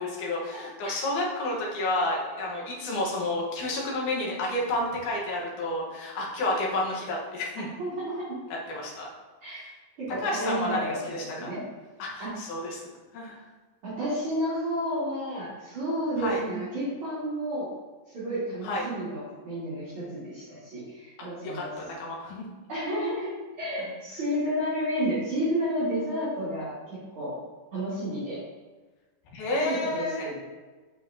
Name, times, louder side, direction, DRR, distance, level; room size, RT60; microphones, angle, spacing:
voice 1, 0.0-7.7 8.7-9.1 9.5-9.7 10.2-11.5 12.0-12.9 13.1-13.4 16.2-16.4 18.6-18.9 21.2-22.4 29.3-30.3, left 1 dB, 65° left, -3 dB, 2.3 m, -30 dB
voice 2, 7.8-8.1 9.4-9.6 10.1-10.8 11.1-11.6 12.2-12.3 13.8-17.7 18.1-21.7 22.7-23.3 23.6-27.4 27.7-28.4 29.6-30.4, equal, 40° right, -13 dB, 2.7 m, -31 dB
7.4 x 6.2 x 2.8 m, 1.3 s
omnidirectional pair, 4.6 m